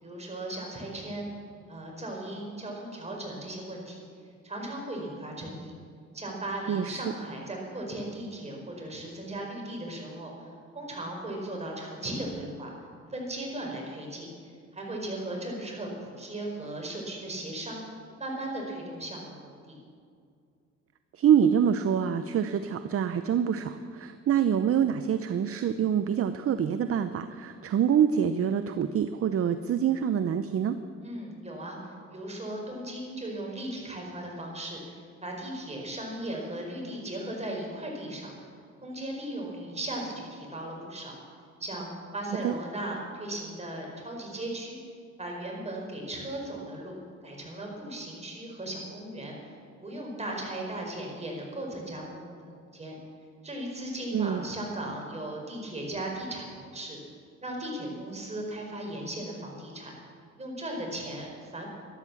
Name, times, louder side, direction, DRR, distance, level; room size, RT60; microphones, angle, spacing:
voice 1, 0.0-1.3 1.7-4.1 4.4-5.7 6.1-12.7 13.1-14.3 14.7-17.8 18.2-19.8 31.0-31.8 32.1-38.3 38.8-41.1 41.6-44.8 45.2-47.0 47.2-49.5 49.8-53.0 53.4-57.0 57.4-59.9 60.4-61.7, right 1 dB, 20° right, -1 dB, 4.7 m, -37 dB
voice 2, 6.7-7.0 21.1-30.8 42.4-42.5 54.1-54.4, right 8 dB, 50° right, 11 dB, 0.6 m, -26 dB
13.0 x 12.0 x 7.1 m, 2.3 s
cardioid pair, 90°, 30 cm